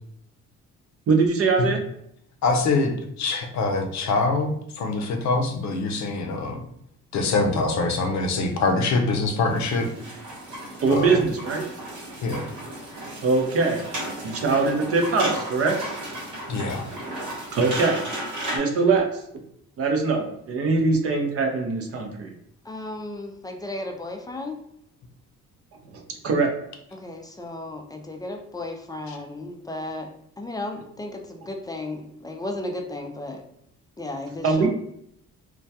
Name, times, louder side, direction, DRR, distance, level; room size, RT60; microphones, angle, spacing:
voice 1, 1.1-1.9 10.8-11.6 13.2-13.8 14.2-15.8 17.5-18.0 18.5-19.2 19.8-22.3 25.9-26.6 34.4-34.7, right 4 dB, 50° right, 3 dB, 0.5 m, -22 dB
voice 2, 2.4-6.6 7.1-9.9 10.9-11.2 12.2-12.5 16.5-16.9 29.1-29.2, left 3 dB, 65° left, 4 dB, 0.5 m, -24 dB
sound 1, 9.5-18.6, right 1 dB, 70° right, 0.9 m, -34 dB
voice 3, 22.6-24.6 27.0-30.1 30.4-33.4 34.0-34.7, left 2 dB, 15° left, 3 dB, 0.3 m, -34 dB
2.2 x 2.1 x 2.7 m, 0.74 s
cardioid pair, 90°, 30 cm